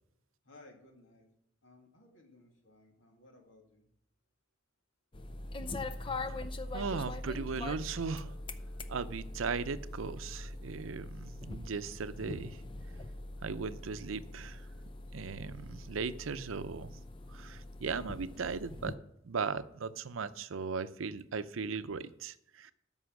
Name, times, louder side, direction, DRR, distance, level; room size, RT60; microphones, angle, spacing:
voice 1, 0.4-1.3 1.6-3.9, left 2 dB, 75° left, 2.5 m, -59 dB
sound 1, 5.1-19.0, left 2 dB, 25° left, 0.5 m, -42 dB
voice 2, 6.7-8.3 8.9-12.6 13.4-14.6 15.1-16.9 17.3-18.9 19.2-22.7, right 5 dB, 90° right, 0.6 m, -37 dB
13.0 x 5.5 x 6.1 m
head